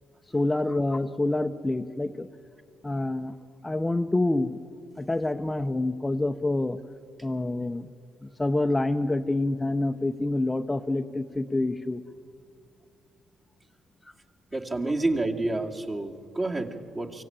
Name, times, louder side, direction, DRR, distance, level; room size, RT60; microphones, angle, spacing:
voice 1, 0.3-2.3 2.8-3.3 3.6-4.6 5.0-6.8 7.2-7.9 8.4-12.0, left 2 dB, 15° left, 7 dB, 0.7 m, -27 dB
voice 2, 14.5-17.2, right 2 dB, 30° right, 1 dB, 2.4 m, -29 dB
24.5 x 16.0 x 8.9 m, 2.3 s
cardioid pair, 90°, 0 cm